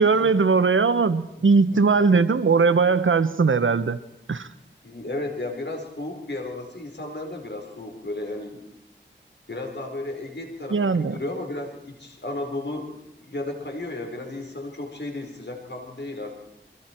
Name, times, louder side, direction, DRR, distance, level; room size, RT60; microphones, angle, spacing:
voice 1, 0.0-4.0 4.3-4.5 10.7-11.1, right 4 dB, 80° right, 13 dB, 1.0 m, -19 dB
voice 2, 1.4-1.9 4.8-8.6 9.5-13.0 13.2-16.4, left 2 dB, 60° left, 3 dB, 4.3 m, -34 dB
28.0 x 23.0 x 4.5 m, 0.88 s
wide cardioid pair, 50°, 20 cm